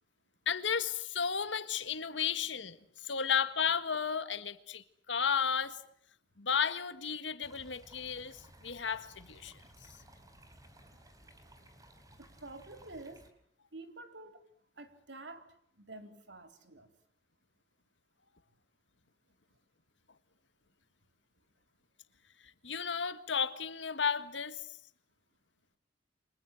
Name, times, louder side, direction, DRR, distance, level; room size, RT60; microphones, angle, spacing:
voice 1, 0.5-2.8 3.0-5.8 6.4-9.5 22.6-24.6, left 6 dB, 75° left, 1.8 m, -33 dB
sound 1, 7.4-13.3, right 1 dB, 20° right, 4.3 m, -58 dB
voice 2, 12.2-13.3 13.7-14.4 14.8-16.9, right 2 dB, 70° right, 3.9 m, -49 dB
30.0 x 25.5 x 7.8 m
head